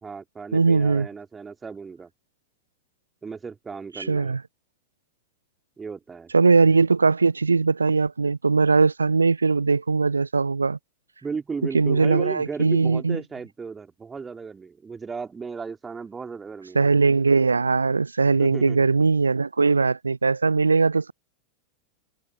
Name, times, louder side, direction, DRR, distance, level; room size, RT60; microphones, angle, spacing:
voice 1, 0.0-2.1 3.2-4.3 5.8-6.3 11.2-16.9 18.3-18.9, right 5 dB, 15° right, 2.9 m, -35 dB
voice 2, 0.5-1.1 4.0-4.4 6.3-10.8 11.7-13.2 16.8-21.1, right 4 dB, 75° right, 0.3 m, -20 dB
figure-of-eight pair, 90°, 0 cm